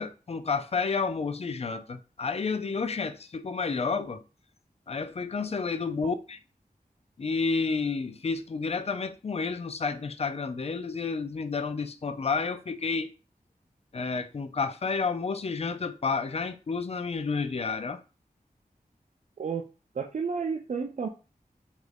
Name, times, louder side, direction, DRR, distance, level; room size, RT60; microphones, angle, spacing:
voice 1, 0.0-4.2 4.9-6.4 7.2-13.1 13.9-18.0, left 4 dB, 40° left, 0.4 m, -30 dB
voice 2, 19.9-21.1, right 5 dB, 50° right, 0.4 m, -31 dB
3.0 x 2.5 x 3.3 m
cardioid pair, 40°, 16 cm